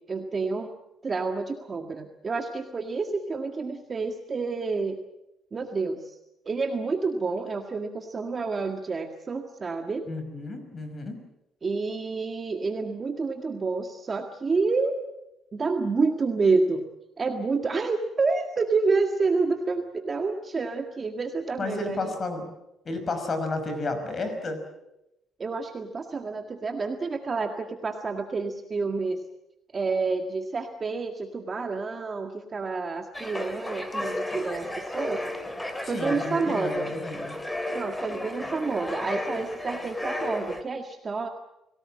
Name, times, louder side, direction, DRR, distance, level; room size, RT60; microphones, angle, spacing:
voice 1, 0.1-0.7 1.0-5.0 5.5-6.2 6.5-10.1 11.6-15.0 15.5-16.8 17.2-22.1 25.4-29.2 29.7-35.2 35.9-36.9 37.7-41.3, right 4 dB, 30° right, 5 dB, 1.8 m, -29 dB
voice 2, 10.1-11.2 21.6-22.4 22.9-24.6 35.8-37.3, left 2 dB, 35° left, 8 dB, 5.4 m, -32 dB
sound 1, 33.1-40.6, left 1 dB, 10° left, 3.1 m, -33 dB
29.5 x 18.0 x 7.6 m, 0.89 s
cardioid pair, 120°, 0 cm